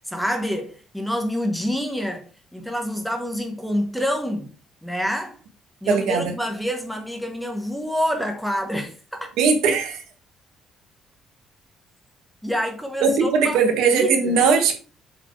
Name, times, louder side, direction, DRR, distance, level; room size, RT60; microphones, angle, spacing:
voice 1, 0.1-2.3 2.5-4.5 4.8-5.4 5.8-9.3 12.4-13.6 13.9-14.4, equal, ahead, 1.2 m, -27 dB
voice 2, 5.9-6.3 9.4-10.0 13.0-14.7, right 5 dB, 80° right, 1.8 m, -19 dB
7.5 x 4.8 x 3.2 m
cardioid pair, 175°, 0 cm